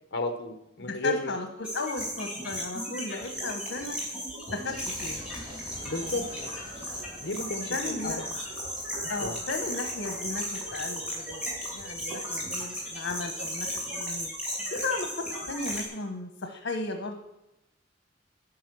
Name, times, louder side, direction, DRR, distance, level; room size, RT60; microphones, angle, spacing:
voice 1, 0.1-1.3 5.8-6.2 7.2-8.1 9.2-9.3, left 2 dB, 65° left, 6 dB, 1.2 m, -32 dB
voice 2, 0.8-4.0 4.5-5.3 6.3-6.5 7.7-8.3 9.1-14.3 14.7-17.2, left 3 dB, 90° left, 4 dB, 1.2 m, -35 dB
sound 1, 1.6-15.8, equal, 5° right, 5.7 m, -35 dB
sound 2, 4.7-15.4, left 1 dB, 25° right, 4.3 m, -50 dB
11.0 x 10.0 x 6.2 m, 0.92 s
head